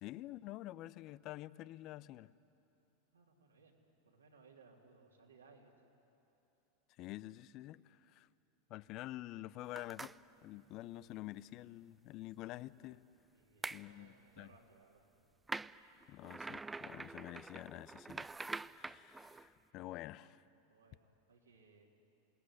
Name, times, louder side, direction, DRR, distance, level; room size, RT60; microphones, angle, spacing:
voice 1, 0.0-2.3 7.0-8.3 8.7-10.2 10.4-13.0 13.7-14.5 16.1-18.3 18.7-20.4, left 16 dB, 45° left, 19 dB, 0.6 m, -48 dB
voice 2, 3.1-3.7 4.0-5.7 13.3-15.1 20.1-20.4 20.7-21.9, right 4 dB, 85° right, -1 dB, 3.4 m, -64 dB
sound 1, 9.8-10.2 13.6-13.8 15.5-19.5, right 3 dB, 10° right, 0.5 m, -45 dB
27.5 x 19.0 x 9.9 m, 2.9 s
hypercardioid pair, 90°, 0 cm